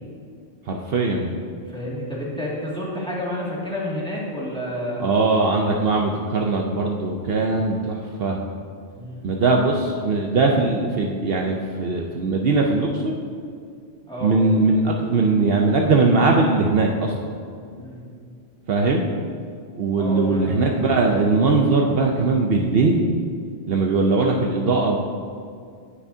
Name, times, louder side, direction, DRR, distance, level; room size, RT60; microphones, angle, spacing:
voice 1, 0.7-1.3 5.0-8.4 9.2-13.1 14.2-17.3 18.7-19.0 19.8-23.1 23.7-25.0, right 3 dB, 65° right, 1 dB, 0.9 m, -20 dB
voice 2, 1.7-5.1 9.0-9.4 14.1-14.4 17.8-18.0 20.0-20.6, left 1 dB, 5° left, -7 dB, 2.1 m, -30 dB
17.5 x 5.9 x 2.7 m, 2.3 s
omnidirectional pair, 1.1 m